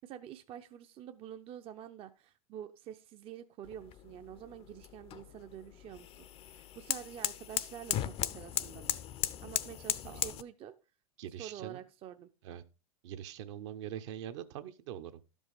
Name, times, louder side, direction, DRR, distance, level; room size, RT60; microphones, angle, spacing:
voice 1, 0.0-9.0 9.4-10.8 11.4-12.3, right 10 dB, 30° right, 8 dB, 0.7 m, -48 dB
sound 1, 3.6-10.4, left 11 dB, 30° left, 0.6 m, -37 dB
voice 2, 11.2-11.8 12.4-12.6 13.0-15.2, right 10 dB, 55° right, 10 dB, 0.9 m, -43 dB
12.5 x 5.4 x 5.0 m, 0.31 s
figure-of-eight pair, 90°, 18 cm